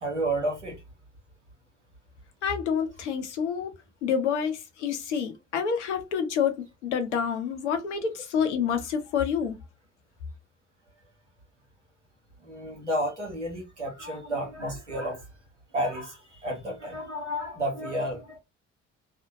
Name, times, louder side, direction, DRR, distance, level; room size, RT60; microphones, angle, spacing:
voice 1, 0.0-0.8 12.4-15.2 15.7-18.4, right 1 dB, 90° right, 0.8 m, -31 dB
voice 2, 2.4-3.7 4.0-6.5 6.8-9.6, left 7 dB, 75° left, 0.6 m, -28 dB
2.5 x 2.1 x 2.6 m
figure-of-eight pair, 45°, 35 cm